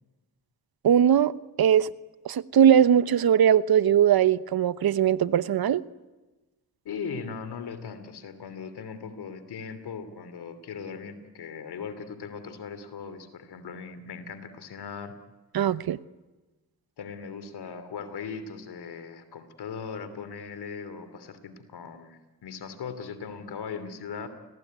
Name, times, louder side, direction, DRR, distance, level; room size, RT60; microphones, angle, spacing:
voice 1, 0.8-1.3 1.6-1.9 2.2-5.8 15.5-16.0, right 9 dB, 70° right, 1.0 m, -20 dB
voice 2, 6.8-15.1 17.0-24.3, left 6 dB, 80° left, 3.0 m, -39 dB
29.0 x 21.0 x 9.5 m
supercardioid pair, 45°, 39 cm